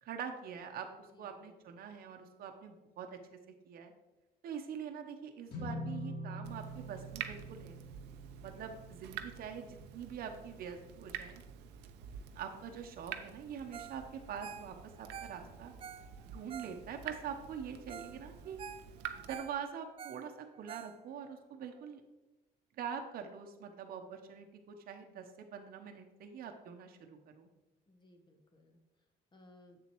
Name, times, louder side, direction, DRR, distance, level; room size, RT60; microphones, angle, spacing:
voice 1, 0.0-3.4 3.6-3.9 4.4-7.8 8.4-11.4 12.3-15.7 16.3-18.6 19.1-22.0 22.8-27.5, right 7 dB, 60° right, 4 dB, 0.9 m, -44 dB
voice 2, 1.1-1.9 27.9-28.8 29.3-29.8, left 1 dB, 25° left, 5 dB, 1.1 m, -62 dB
sound 1, 5.5-11.9, equal, 75° left, 1.9 m, -46 dB
Water tap faucet / Drip, 6.4-19.4, right 9 dB, 85° right, 0.6 m, -48 dB
Ringtone, 13.7-14.0 14.3-17.2 17.6-17.7 17.9-18.2 18.4-21.3 21.8-21.9, right 8 dB, 35° right, 0.4 m, -48 dB
7.8 x 7.0 x 3.0 m, 1.1 s
cardioid pair, 110°, 17 cm